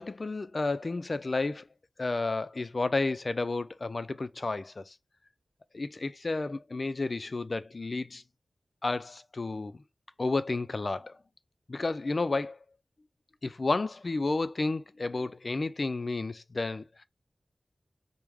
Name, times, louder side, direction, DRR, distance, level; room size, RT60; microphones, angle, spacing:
voice 1, 0.0-1.7 2.0-4.9 5.7-8.2 8.8-9.7 10.2-11.2 11.7-12.6 13.4-17.0, left 3 dB, 50° left, 0.4 m, -31 dB
4.6 x 2.1 x 3.5 m
wide cardioid pair, 60°, 0 cm